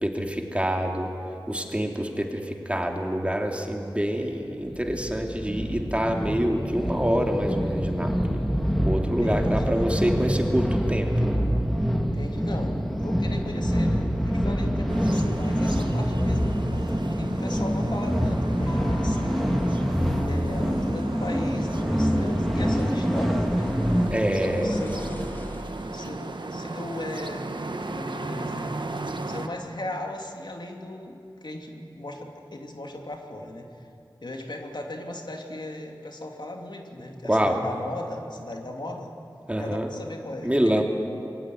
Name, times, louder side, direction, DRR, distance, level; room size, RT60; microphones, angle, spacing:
voice 1, 0.0-1.1 1.5-8.4 8.8-11.1 24.1-24.8 37.2-37.6 39.5-39.9 40.4-40.8, equal, 15° right, 2 dB, 3.0 m, -26 dB
sound 1, 4.7-24.1, equal, ahead, 2.8 m, -25 dB
voice 2, 9.2-9.9 12.1-20.0 20.3-24.3 24.6-27.5 27.9-28.7 29.3-33.9 34.2-39.1 39.6-40.8, left 1 dB, 65° left, 2 dB, 2.9 m, -38 dB
sound 2, 14.9-29.5, right 2 dB, 70° right, 1.6 m, -36 dB
sound 3, 18.5-26.0, left 1 dB, 25° left, 3.0 m, -38 dB
27.0 x 22.5 x 9.7 m, 2.7 s
wide cardioid pair, 60°, 8 cm